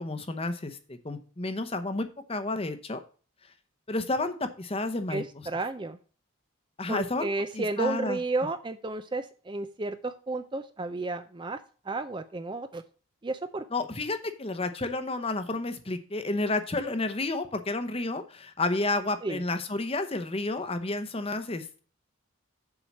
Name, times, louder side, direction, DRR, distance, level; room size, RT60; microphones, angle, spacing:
voice 1, 0.0-3.0 3.9-5.2 6.8-7.3 7.5-8.2 13.7-21.8, left 2 dB, 25° left, 9 dB, 0.8 m, -31 dB
voice 2, 5.1-6.0 6.9-11.6 11.9-12.8 13.2-13.6 19.2-19.4, right 3 dB, 20° right, 10 dB, 0.4 m, -32 dB
7.2 x 4.8 x 7.0 m, 0.39 s
head